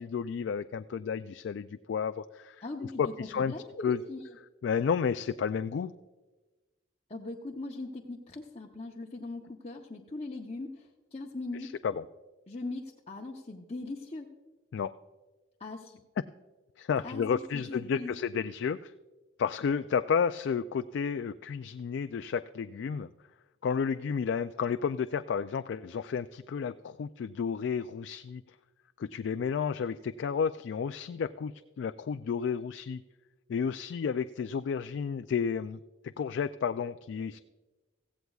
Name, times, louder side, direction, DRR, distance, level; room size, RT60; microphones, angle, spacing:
voice 1, 0.0-2.6 3.0-3.5 3.8-4.0 4.6-5.9 11.6-12.1 14.7-14.9 16.8-18.9 19.4-23.1 23.6-28.4 29.0-33.0 33.5-35.8 36.2-37.4, left 6 dB, 80° left, 10 dB, 0.3 m, -31 dB
voice 2, 2.6-4.3 7.1-11.7 12.5-14.3 15.6-16.0 17.0-17.2 17.5-18.4, left 2 dB, 35° left, -2 dB, 0.7 m, -40 dB
16.0 x 15.5 x 2.4 m, 1.2 s
head